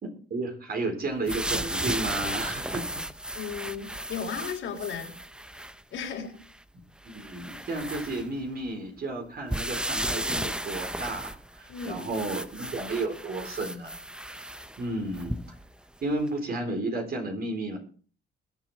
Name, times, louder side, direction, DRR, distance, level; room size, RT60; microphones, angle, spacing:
voice 1, 0.0-2.9 6.7-6.8 7.1-13.9 14.8-15.4 16.0-17.8, right 2 dB, 50° right, 3 dB, 4.0 m, -32 dB
sound 1, 1.3-5.8 6.4-6.5 7.1-8.7 9.5-15.7 16.3-16.4, right 1 dB, 5° right, 0.6 m, -34 dB
voice 2, 3.3-5.1 5.9-6.3 11.7-12.0, left 7 dB, 80° left, -1 dB, 3.7 m, -35 dB
21.5 x 7.2 x 4.3 m, 0.42 s
cardioid pair, 90°, 20 cm